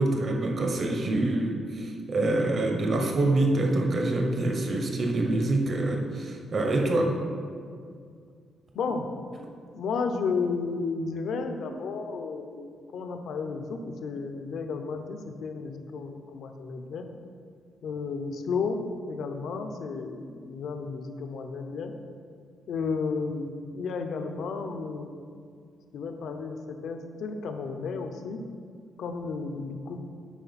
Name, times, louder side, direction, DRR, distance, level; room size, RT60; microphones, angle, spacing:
voice 1, 0.0-7.1, right 2 dB, 35° right, 2 dB, 0.9 m, -26 dB
voice 2, 6.7-7.1 8.7-9.1 9.7-17.0 17.8-21.9 22.7-25.3 25.9-28.4 29.0-30.0, left 4 dB, 65° left, 6 dB, 0.6 m, -33 dB
10.0 x 4.3 x 4.1 m, 2.2 s
cardioid pair, 155°, 0 cm